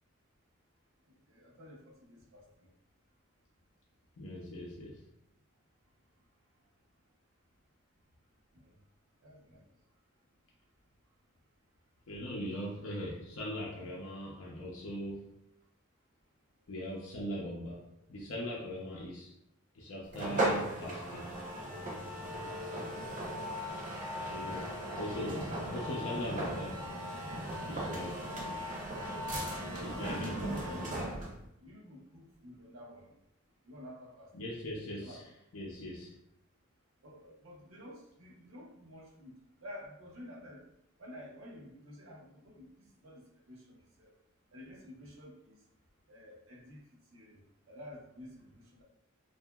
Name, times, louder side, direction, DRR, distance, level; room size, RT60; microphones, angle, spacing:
voice 1, 1.3-2.7 8.6-8.7 9.2-9.6 28.5-28.6 29.9-30.9 31.6-33.2 33.6-34.3 35.0-35.2 37.0-39.3 39.6-40.6 41.0-44.1 44.5-45.6 46.1-46.8 47.1-47.4 47.7-48.8, left 1 dB, 80° right, -2 dB, 0.7 m, -51 dB
voice 2, 4.2-5.0 12.1-15.3 16.7-17.8 18.1-19.3 19.7-21.3 24.3-26.9 27.7-28.6 29.8-30.6 34.3-35.2 35.5-36.1, equal, 80° left, -3 dB, 0.5 m, -40 dB
sound 1, 20.1-31.4, right 1 dB, 40° right, 0.7 m, -37 dB
2.8 x 2.4 x 2.2 m, 0.78 s
head